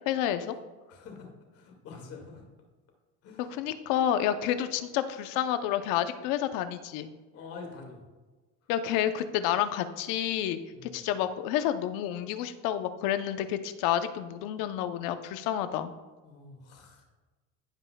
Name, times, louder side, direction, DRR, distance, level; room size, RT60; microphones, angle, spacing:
voice 1, 0.1-0.5 3.5-7.1 8.7-15.9, left 10 dB, 65° left, 10 dB, 0.7 m, -29 dB
voice 2, 0.9-1.3 1.5-2.4 3.2-3.5 7.3-8.0 10.7-11.0 16.2-17.0, left 4 dB, 40° left, 2 dB, 2.1 m, -46 dB
16.0 x 5.6 x 2.3 m, 1.3 s
cardioid pair, 140°, 35 cm